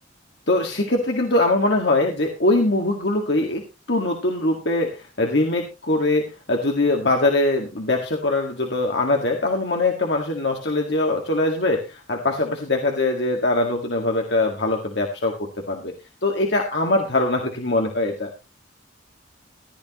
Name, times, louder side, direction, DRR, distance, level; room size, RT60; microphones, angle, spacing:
voice 1, 0.5-3.6 3.9-15.3 15.7-15.9 16.2-18.3, left 2 dB, 60° left, 2 dB, 1.8 m, -22 dB
15.0 x 12.0 x 3.0 m, 0.29 s
head